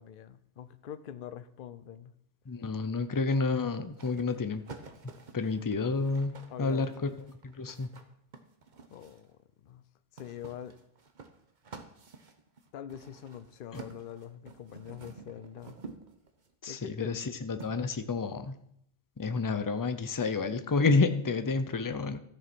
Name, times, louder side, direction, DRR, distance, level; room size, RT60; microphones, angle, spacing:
voice 1, 0.0-2.1 6.5-7.1 8.9-9.4 9.6-9.8 10.1-10.8 12.7-15.8 16.7-17.1, left 10 dB, 60° left, 12 dB, 0.7 m, -44 dB
voice 2, 2.5-4.6 5.0-6.3 6.6-7.1 7.4-7.9 13.7-13.8 16.6-18.6 19.2-22.2, left 4 dB, 25° left, 9 dB, 0.4 m, -30 dB
sound 1, 4.0-9.3 10.2-16.5 17.6-17.7, right 4 dB, 45° right, 1.0 m, -50 dB
14.0 x 6.6 x 4.4 m, 0.74 s
omnidirectional pair, 1.1 m